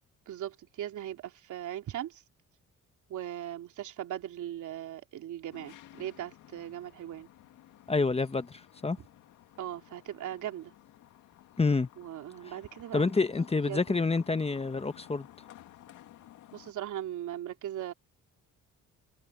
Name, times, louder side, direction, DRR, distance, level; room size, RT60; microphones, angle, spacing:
voice 1, 0.3-2.2 3.1-7.3 9.6-10.7 12.0-13.4 13.7-14.0 16.5-17.9, right 11 dB, 75° right, 3.3 m, -39 dB
sound 1, 5.5-16.7, left 13 dB, 85° left, 2.2 m, -55 dB
voice 2, 7.9-9.0 11.6-11.9 12.9-15.3, left 3 dB, 20° left, 1.1 m, -28 dB
cardioid pair, 90°, 30 cm